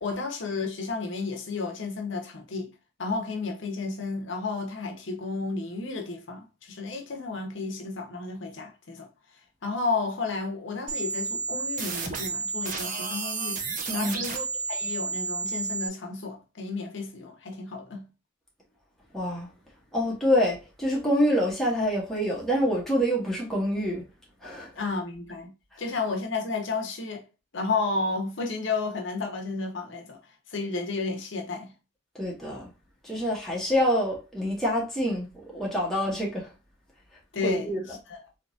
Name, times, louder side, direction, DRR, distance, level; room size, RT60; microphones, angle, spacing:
voice 1, 0.0-2.7 3.0-9.1 9.6-13.6 13.9-18.0 24.8-25.5 25.8-27.2 27.5-30.2 30.5-31.7 37.3-37.8 38.1-38.2, left 3 dB, 70° left, 0.8 m, -32 dB
sound 1, 10.9-15.9, right 4 dB, 40° right, 0.6 m, -31 dB
voice 2, 13.9-14.2 19.1-19.5 19.9-24.1 24.4-24.7 32.1-32.7 33.0-36.5 37.4-37.8, equal, ahead, 0.9 m, -26 dB
3.5 x 2.9 x 2.5 m
head